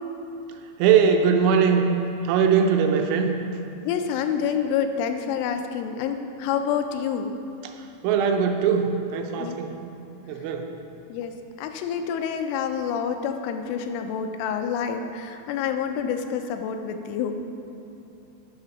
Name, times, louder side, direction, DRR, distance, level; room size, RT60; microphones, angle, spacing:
voice 1, 0.8-1.9 2.2-3.4 7.6-7.8 8.0-9.7 10.3-10.7, right 6 dB, 85° right, 4 dB, 3.1 m, -21 dB
voice 2, 3.8-7.3 9.4-9.6 11.1-17.3, left 7 dB, 85° left, 7 dB, 3.1 m, -28 dB
9.0 x 6.7 x 5.8 m, 2.8 s
omnidirectional pair, 5.5 m